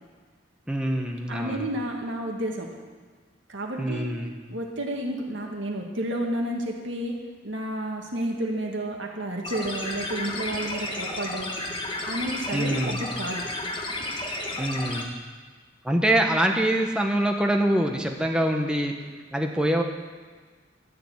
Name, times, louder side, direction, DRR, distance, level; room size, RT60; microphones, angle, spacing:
voice 1, 0.7-1.7 3.8-4.3 12.5-13.0 14.6-15.1 15.8-18.9 19.3-19.8, right 1 dB, 5° right, 2 dB, 1.2 m, -24 dB
voice 2, 1.3-2.7 3.5-4.1 4.5-7.1 7.4-11.6 12.1-13.4, right 1 dB, 85° right, 0 dB, 2.1 m, -31 dB
sound 1, 9.4-15.0, left 2 dB, 25° left, 1.4 m, -32 dB
13.0 x 7.0 x 8.7 m, 1.5 s
head